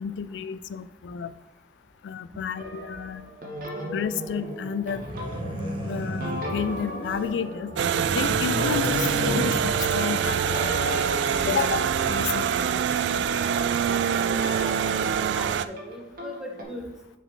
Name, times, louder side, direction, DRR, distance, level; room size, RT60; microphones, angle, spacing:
voice 1, 0.0-1.3 2.0-3.3 3.9-5.0 5.8-7.7 8.1-12.6, left 7 dB, 85° left, 13 dB, 0.3 m, -31 dB
sound 1, 2.5-13.2 13.9-16.6, equal, 55° right, 1.4 m, -37 dB
sound 2, 4.9-7.3 7.6-10.2, equal, 30° right, 1.0 m, -33 dB
sound 3, 7.8-15.6, right 7 dB, 85° right, 0.3 m, -25 dB
voice 2, 13.9-14.7 15.3-16.9, left 1 dB, 5° right, 0 dB, 0.9 m, -40 dB
6.8 x 4.9 x 3.4 m, 0.89 s
head